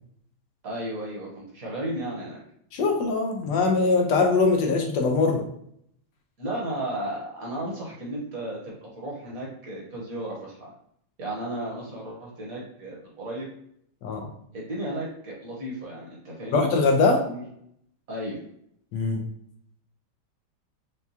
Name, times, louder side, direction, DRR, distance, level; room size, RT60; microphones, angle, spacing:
voice 1, 0.6-2.4 6.4-10.7 11.2-13.5 14.5-16.7 17.2-17.4 18.1-18.4, right 1 dB, 55° right, -3 dB, 1.5 m, -34 dB
voice 2, 2.7-5.4 14.0-14.3 16.5-17.2 18.9-19.2, left 3 dB, 80° left, 2 dB, 1.4 m, -22 dB
5.7 x 2.3 x 2.8 m, 0.70 s
omnidirectional pair, 1.9 m